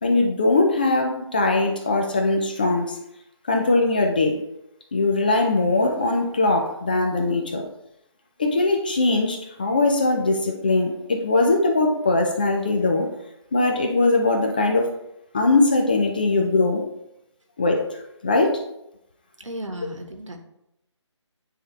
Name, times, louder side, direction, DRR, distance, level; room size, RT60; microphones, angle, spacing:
voice 1, 0.0-3.0 3.5-4.4 4.9-7.6 8.4-13.1 13.5-14.9 15.3-16.8 17.6-17.8 18.2-18.6, left 2 dB, 20° left, 3 dB, 0.4 m, -21 dB
voice 2, 19.4-20.4, equal, 85° right, 4 dB, 1.4 m, -34 dB
9.5 x 3.5 x 3.2 m, 0.82 s
figure-of-eight pair, 160°, 16 cm